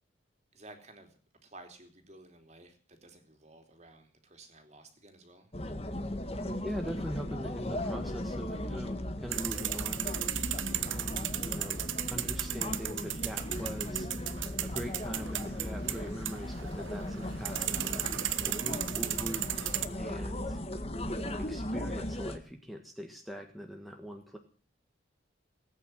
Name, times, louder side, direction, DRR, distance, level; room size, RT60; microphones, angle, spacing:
voice 1, 0.5-1.1 1.4-5.5 15.9-16.2 19.9-20.3, right 2 dB, 35° right, 6 dB, 3.0 m, -54 dB
sound 1, 5.5-22.4, left 1 dB, 30° left, 1.7 m, -37 dB
voice 2, 6.6-11.8 12.1-14.1 14.6-20.6 21.1-24.4, equal, ahead, 3 dB, 1.5 m, -42 dB
sound 2, 9.3-19.9, right 13 dB, 80° right, 1.1 m, -35 dB
18.5 x 9.3 x 7.7 m, 0.41 s
head